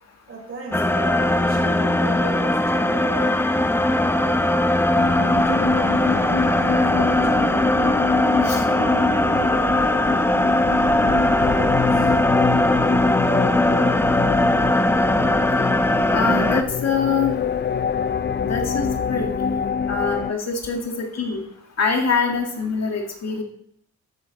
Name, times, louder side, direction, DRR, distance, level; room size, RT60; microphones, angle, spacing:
voice 1, 0.3-3.5 3.8-8.0 8.4-10.2 11.4-12.1, right 2 dB, 45° right, -2 dB, 5.4 m, -35 dB
sound 1, 0.7-16.6, left 1 dB, 5° left, 0.8 m, -20 dB
sound 2, 4.9-20.3, left 6 dB, 35° left, 0.6 m, -26 dB
voice 2, 16.1-17.4 18.4-19.3 19.9-21.4 21.8-23.4, left 5 dB, 60° left, 2 dB, 2.2 m, -24 dB
13.5 x 7.5 x 4.2 m, 0.69 s
cardioid pair, 70°, 30 cm